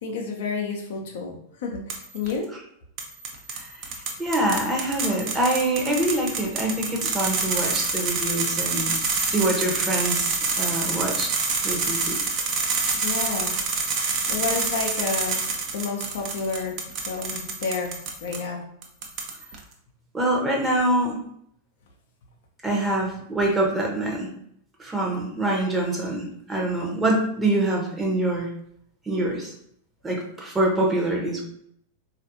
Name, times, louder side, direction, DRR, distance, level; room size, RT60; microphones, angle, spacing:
voice 1, 0.0-1.4 1.6-2.5 13.0-13.6 14.3-15.4 15.7-16.8 17.1-17.9 18.2-18.6, left 4 dB, 55° left, 1 dB, 0.6 m, -30 dB
sound 1, 1.9-2.3 3.0-18.4 18.8-19.6, right 4 dB, 40° right, 0.7 m, -27 dB
voice 2, 4.2-8.9 9.3-11.3 11.6-12.2 20.1-21.2 22.6-24.3 24.8-28.5 29.1-29.5 30.0-31.4, right 1 dB, 15° right, -1 dB, 0.9 m, -25 dB
4.0 x 2.5 x 2.7 m, 0.70 s
figure-of-eight pair, 90°, 0 cm